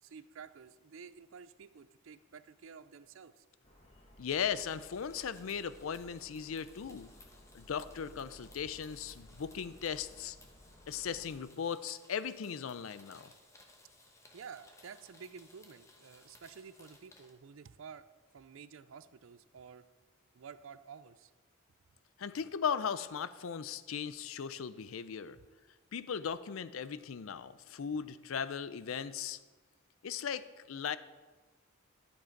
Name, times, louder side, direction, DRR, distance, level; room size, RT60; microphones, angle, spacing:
voice 1, 0.0-3.4 14.3-18.1 18.3-19.8 20.3-21.3 25.3-25.4, right 6 dB, 70° right, 14 dB, 0.5 m, -51 dB
sound 1, 3.6-11.4, left 1 dB, 30° left, 1.4 m, -58 dB
voice 2, 4.2-7.1 7.5-10.4 10.9-13.3 22.2-25.4 25.9-29.4 30.0-31.0, left 7 dB, 75° left, 14 dB, 0.5 m, -37 dB
sound 2, 4.4-17.3, left 2 dB, 15° left, 1.0 m, -61 dB
11.5 x 7.3 x 4.5 m, 1.3 s
head